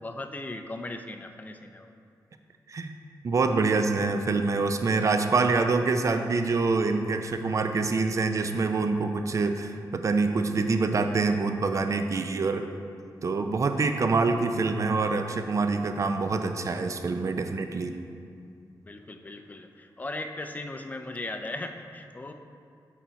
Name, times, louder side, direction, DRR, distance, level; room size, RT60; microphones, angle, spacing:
voice 1, 0.0-1.9 18.8-22.3, left 2 dB, 20° left, 6 dB, 0.4 m, -38 dB
voice 2, 3.2-12.7 13.2-17.9, right 3 dB, 45° right, 7 dB, 0.4 m, -26 dB
6.9 x 4.4 x 4.0 m, 2.4 s
wide cardioid pair, 100°, 8 cm